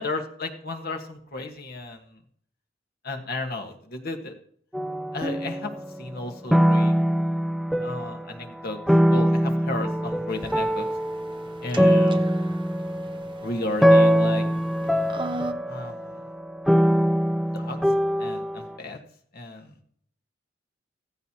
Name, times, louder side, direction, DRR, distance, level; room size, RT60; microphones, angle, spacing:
voice 1, 0.0-2.2 3.0-4.3 5.1-5.7 6.0-6.9 7.8-8.8 9.1-10.8 11.6-12.5 13.4-14.5 15.7-16.2 17.5-17.8 18.2-19.0 19.3-19.9, left 2 dB, 55° left, 4 dB, 1.7 m, -34 dB
sound 1, 4.7-6.2 6.5-8.3 8.9-18.7, equal, ahead, 0.5 m, -22 dB
sound 2, 10.3-15.5, right 2 dB, 25° right, 0.8 m, -40 dB
15.5 x 14.5 x 3.0 m, 0.63 s
head